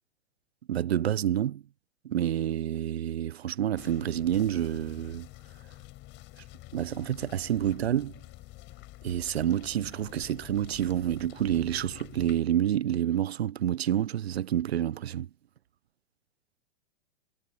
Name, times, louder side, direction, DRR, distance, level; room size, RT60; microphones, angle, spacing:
voice 1, 0.7-1.6 2.0-5.3 6.7-8.2 9.0-15.3, right 11 dB, 70° right, 1.0 m, -28 dB
sound 1, 3.8-12.4, left 18 dB, 35° left, 5.1 m, -48 dB
figure-of-eight pair, 110°, 33 cm